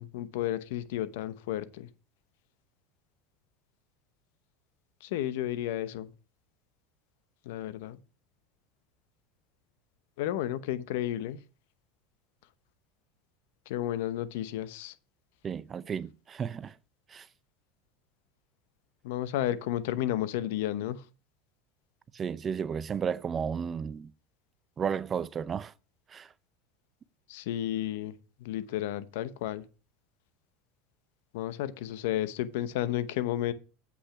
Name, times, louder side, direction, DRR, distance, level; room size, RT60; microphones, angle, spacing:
voice 1, 0.0-1.9 5.0-6.1 7.5-8.0 10.2-11.4 13.7-14.9 19.0-21.0 27.3-28.1 28.4-29.6 31.3-33.5, left 12 dB, 80° left, 0.9 m, -32 dB
voice 2, 15.4-16.7 17.1-17.3 22.1-24.1 24.8-25.7 26.1-26.3, right 7 dB, 30° right, 0.5 m, -33 dB
8.2 x 5.9 x 5.7 m
supercardioid pair, 125°, 0 cm